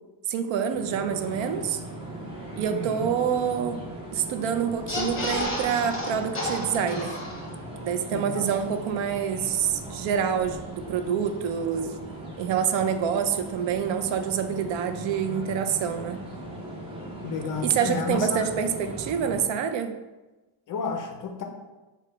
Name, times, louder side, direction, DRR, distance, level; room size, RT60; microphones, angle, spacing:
voice 1, 0.3-1.8 2.6-3.8 4.1-7.2 7.8-12.0 12.4-16.2 17.6-19.9, right 8 dB, 65° right, 8 dB, 0.5 m, -27 dB
sound 1, 0.7-19.4, right 1 dB, 10° right, 0.6 m, -39 dB
voice 2, 2.7-3.1 8.1-8.5 17.2-18.4 20.7-21.4, left 4 dB, 45° left, 4 dB, 0.5 m, -31 dB
sound 2, 4.7-7.7 8.1-8.2 8.4-8.5, left 1 dB, 25° left, 0.9 m, -32 dB
4.8 x 2.3 x 4.4 m, 1.1 s
cardioid pair, 170°, 49 cm